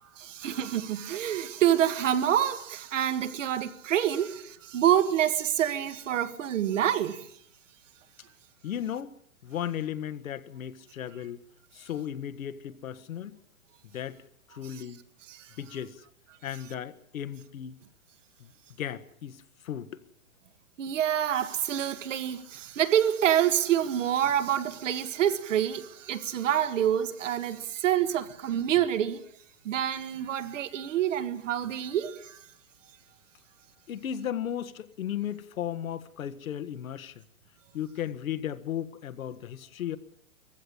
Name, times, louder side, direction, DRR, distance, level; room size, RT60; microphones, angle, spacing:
voice 1, 0.2-7.3 15.3-15.6 20.8-29.2 29.7-32.4, right 10 dB, 60° right, 1.9 m, -27 dB
voice 2, 8.6-9.2 9.4-11.4 11.7-13.4 13.9-14.2 14.5-15.0 15.6-16.0 16.4-17.8 18.4-18.5 18.8-20.0 33.9-37.2 37.7-40.0, left 10 dB, 75° left, 1.6 m, -35 dB
20.5 x 16.0 x 9.9 m
hypercardioid pair, 160°, 42 cm